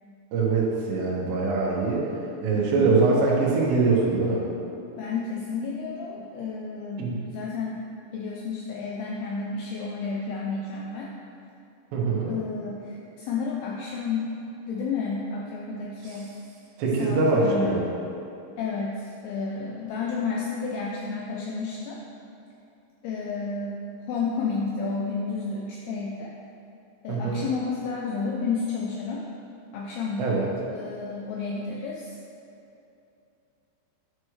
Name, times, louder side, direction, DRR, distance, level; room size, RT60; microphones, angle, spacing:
voice 1, 0.3-2.1 2.4-4.4 7.0-7.2 11.9-12.3 16.8-17.8 27.1-27.4 30.2-30.5, right 3 dB, 75° right, -4 dB, 3.3 m, -23 dB
voice 2, 2.5-3.0 5.0-7.8 8.1-11.1 12.3-14.3 14.7-16.3 17.0-17.8 18.6-22.0 23.0-23.8 24.1-26.3 27.0-29.3 29.7-30.4 30.7-32.1, left 4 dB, 85° left, -2 dB, 2.3 m, -31 dB
11.5 x 6.2 x 3.2 m, 2.8 s
omnidirectional pair, 5.3 m